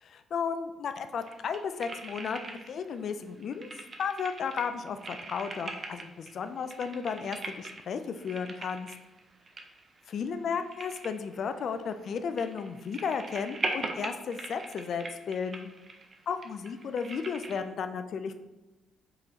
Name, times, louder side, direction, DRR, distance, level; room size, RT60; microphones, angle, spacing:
voice 1, 0.0-3.7 4.0-8.9 10.1-15.7 16.3-18.3, left 6 dB, 60° left, 9 dB, 0.4 m, -34 dB
sound 1, 1.2-2.9 3.2-17.6, right 3 dB, 40° right, 0.6 m, -41 dB
4.7 x 3.8 x 2.8 m, 1.1 s
cardioid pair, 90°, 0 cm